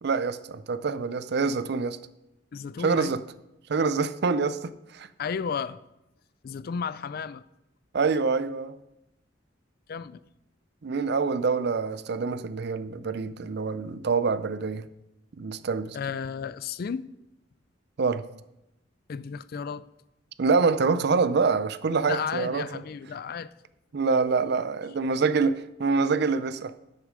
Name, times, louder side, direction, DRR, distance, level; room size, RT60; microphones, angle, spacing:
voice 1, 0.0-2.0 2.8-3.2 3.7-5.1 7.9-8.8 10.8-14.9 15.4-16.0 18.0-18.2 20.4-22.7 23.9-26.7, right 4 dB, 60° right, 0.5 m, -26 dB
voice 2, 2.5-3.2 5.2-5.8 6.4-7.4 9.9-10.2 15.9-17.1 19.1-19.9 22.1-23.5, left 6 dB, 55° left, 0.3 m, -33 dB
9.6 x 6.6 x 5.1 m
head